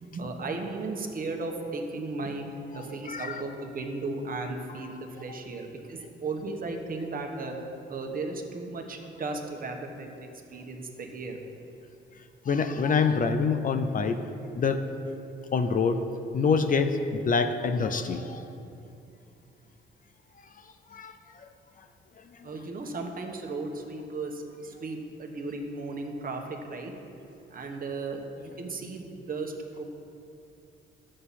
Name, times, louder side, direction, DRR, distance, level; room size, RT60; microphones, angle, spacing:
voice 1, 0.0-2.4 2.7-7.5 7.9-11.4 22.4-26.9 27.5-29.8, right 3 dB, 45° right, 3 dB, 1.3 m, -35 dB
voice 2, 2.7-3.4 4.8-4.9 5.3-5.4 12.4-14.2 14.6-14.8 15.5-16.0 16.3-18.5 20.9-21.5 21.8-21.9 22.2-22.5, left 5 dB, 45° left, 8 dB, 0.6 m, -26 dB
11.0 x 7.7 x 4.2 m, 2.7 s
cardioid pair, 90°, 20 cm